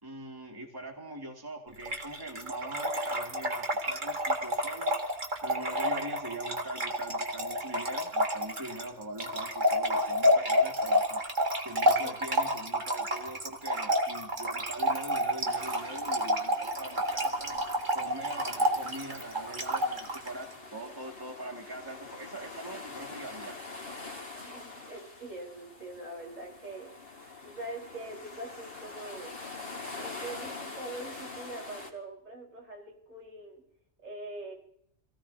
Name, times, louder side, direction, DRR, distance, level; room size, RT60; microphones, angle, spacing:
voice 1, 0.0-11.2 11.6-17.6 17.9-23.6, right 2 dB, 15° right, 1 dB, 2.2 m, -42 dB
Trickle dribble / Fill (with liquid), 1.8-20.3, equal, 35° right, 1.8 m, -29 dB
voice 2, 12.0-12.3 24.5-26.9 27.4-29.3 30.0-33.6 34.0-34.5, right 2 dB, 70° right, -1 dB, 4.8 m, -43 dB
sound 1, 15.5-31.9, left 3 dB, 40° left, 3.3 m, -45 dB
27.5 x 17.0 x 2.8 m, 0.71 s
omnidirectional pair, 1.4 m